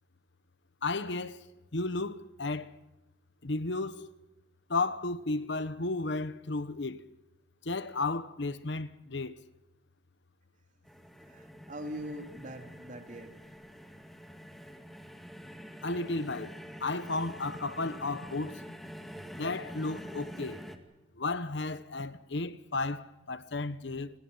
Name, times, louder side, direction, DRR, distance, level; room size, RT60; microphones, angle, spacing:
voice 1, 0.8-2.8 3.4-4.1 4.7-7.0 7.6-9.3 15.8-18.6 19.3-20.6 21.2-24.1, left 3 dB, 65° left, 1.1 m, -33 dB
sound 1, 10.8-20.8, equal, ahead, 2.1 m, -46 dB
voice 2, 11.2-13.4, equal, 40° right, 3.2 m, -42 dB
29.5 x 21.5 x 5.7 m
head